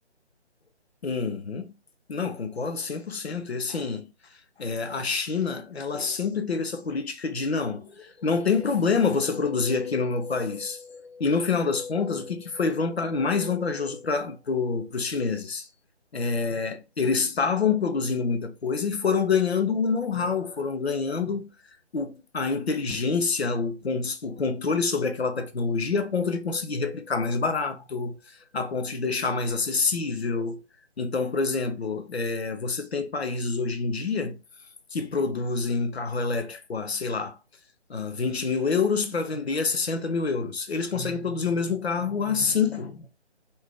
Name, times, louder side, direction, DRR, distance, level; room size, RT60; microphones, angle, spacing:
voice 1, 1.0-1.7 2.1-4.1 4.6-15.7 16.1-21.5 21.9-28.2 28.5-30.6 31.0-34.4 34.9-37.4 37.9-43.1, left 4 dB, 65° left, 0.6 m, -27 dB
2.6 x 2.1 x 3.6 m
figure-of-eight pair, 150°, 35 cm